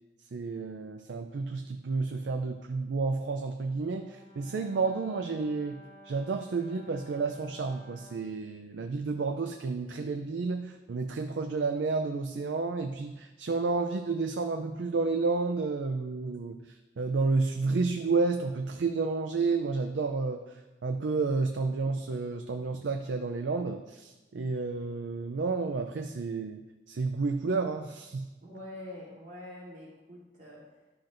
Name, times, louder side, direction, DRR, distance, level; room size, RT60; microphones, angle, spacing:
voice 1, 0.3-16.6 17.0-20.4 20.8-28.3, right 4 dB, 80° right, 6 dB, 0.4 m, -31 dB
Brass instrument, 3.9-8.3, equal, 10° left, 1.4 m, -54 dB
voice 2, 28.4-30.7, left 1 dB, 50° right, -6 dB, 2.8 m, -45 dB
11.5 x 5.8 x 2.6 m, 1.1 s
head